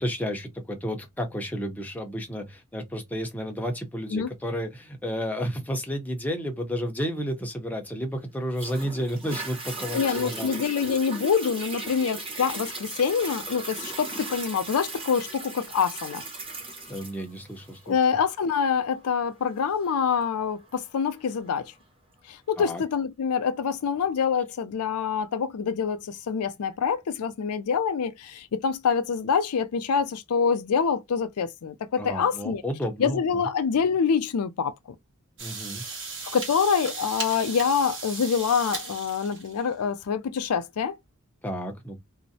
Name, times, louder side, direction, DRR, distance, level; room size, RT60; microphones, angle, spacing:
voice 1, 0.0-10.5 16.9-18.0 22.6-22.8 32.0-33.5 35.4-35.8 41.4-42.0, equal, 5° left, 0.6 m, -32 dB
Toilet flush, 8.6-21.6 22.2-22.3, right 2 dB, 25° right, 0.9 m, -38 dB
voice 2, 9.9-16.2 17.9-21.7 22.5-32.6 33.0-34.7 36.3-40.9, left 6 dB, 90° left, 0.4 m, -26 dB
sound 1, 35.4-39.7, right 4 dB, 60° right, 1.1 m, -36 dB
2.5 x 2.0 x 2.6 m
head